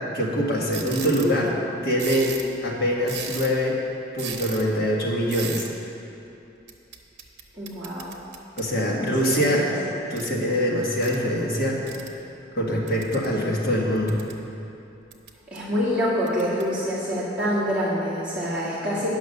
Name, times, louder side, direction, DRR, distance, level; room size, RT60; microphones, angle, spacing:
voice 1, 0.1-1.6 1.8-2.4 2.6-3.8 4.1-5.6 8.6-9.7 10.1-11.8 12.6-14.2, equal, 55° left, -3 dB, 1.6 m, -23 dB
sound 1, 0.7-1.3 2.0-2.5 3.0-3.6 4.2-4.6 5.3-5.7 6.7-8.7 9.3-9.5 10.2-10.3 11.0-11.2 11.9-12.1 12.9-13.3 13.8-14.4 15.1-15.6 16.3-16.6, right 7 dB, 70° right, 0.8 m, -36 dB
voice 2, 7.5-8.1 8.9-9.7 15.5-19.1, equal, 5° right, -12 dB, 2.0 m, -26 dB
9.6 x 6.0 x 6.5 m, 2.8 s
head